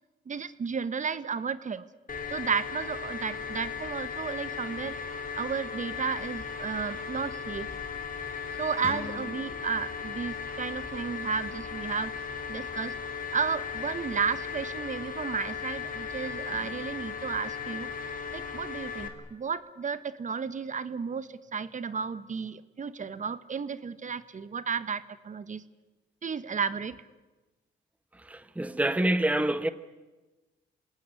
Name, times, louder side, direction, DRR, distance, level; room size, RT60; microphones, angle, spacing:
voice 1, 0.3-1.9 2.3-5.0 5.4-7.7 8.6-12.2 12.5-12.9 13.3-17.9 18.3-25.6 26.2-27.0, right 6 dB, 40° right, 1.4 m, -33 dB
sound 1, 2.1-19.1, left 6 dB, 45° left, 4.0 m, -37 dB
sound 2, 8.8-11.8, left 4 dB, 30° left, 1.9 m, -46 dB
voice 2, 28.1-29.7, right 1 dB, 5° right, 1.1 m, -27 dB
27.5 x 18.5 x 9.8 m
cardioid pair, 90°, 20 cm